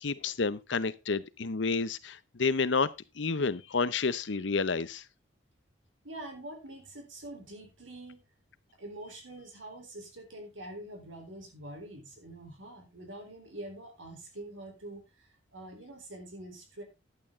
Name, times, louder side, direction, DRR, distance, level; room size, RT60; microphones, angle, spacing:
voice 1, 0.0-2.9 3.2-5.0, left 4 dB, 70° left, 0.8 m, -30 dB
voice 2, 6.0-8.2 8.8-16.8, right 1 dB, 85° right, 3.8 m, -45 dB
11.5 x 8.7 x 3.7 m
head